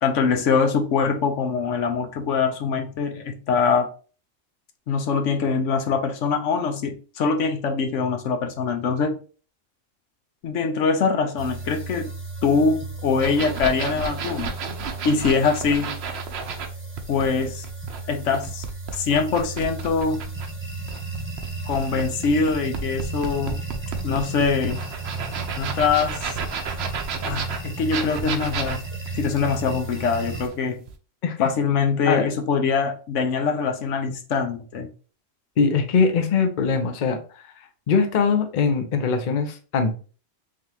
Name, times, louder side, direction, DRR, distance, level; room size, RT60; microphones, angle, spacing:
voice 1, 0.0-3.9 4.9-9.2 10.4-12.1 12.4-14.6 15.0-15.9 17.1-17.6 18.1-18.6 19.0-20.2 21.7-23.6 24.0-24.8 25.6-26.2 27.2-28.8 29.1-30.8 31.4-34.9, left 5 dB, 80° left, 1.1 m, -23 dB
sound 1, 11.4-30.5, right 3 dB, 10° right, 0.8 m, -34 dB
sound 2, 13.2-16.7 17.0-20.5 20.9-30.5 30.9-31.0, right 5 dB, 65° right, 0.8 m, -32 dB
voice 2, 35.6-37.2 37.9-39.9, left 5 dB, 50° left, 0.7 m, -21 dB
3.8 x 3.6 x 2.8 m
omnidirectional pair, 1.3 m